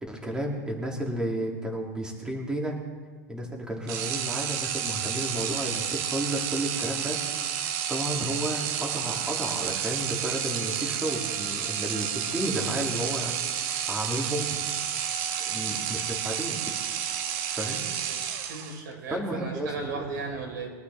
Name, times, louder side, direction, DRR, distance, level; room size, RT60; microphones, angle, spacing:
voice 1, 0.0-2.8 3.3-7.2 7.9-13.3 13.7-14.5 15.5-16.7 17.5-17.8 19.1-20.1, right 1 dB, 10° right, -1 dB, 3.0 m, -32 dB
sound 1, 3.9-18.9, right 9 dB, 55° right, 1.3 m, -31 dB
voice 2, 18.5-20.7, right 4 dB, 80° right, 1 dB, 4.7 m, -36 dB
23.0 x 12.5 x 3.6 m, 1.4 s
supercardioid pair, 130°, 10 cm